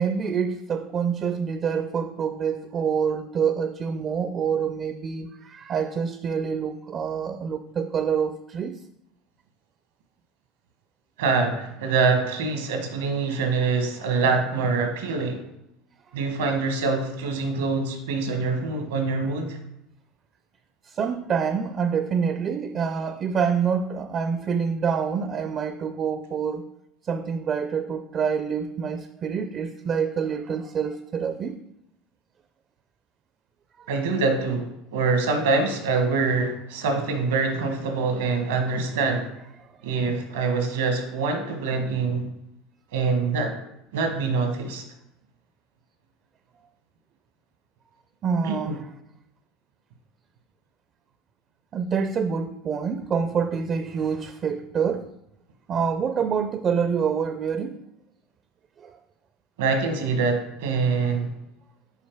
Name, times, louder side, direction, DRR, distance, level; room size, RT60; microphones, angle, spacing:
voice 1, 0.0-8.8 20.8-26.7 27.0-31.6 33.8-33.9 39.0-39.1 48.2-48.8 51.7-55.1 55.7-57.8 58.8-59.0, right 6 dB, 40° right, 0.4 m, -26 dB
voice 2, 11.2-15.4 16.1-19.6 33.9-39.3 39.8-42.3 42.9-43.6 43.9-44.8 48.4-48.8 59.6-61.3, right 4 dB, 85° right, 1.2 m, -25 dB
5.7 x 4.1 x 4.6 m
supercardioid pair, 95°, 0 cm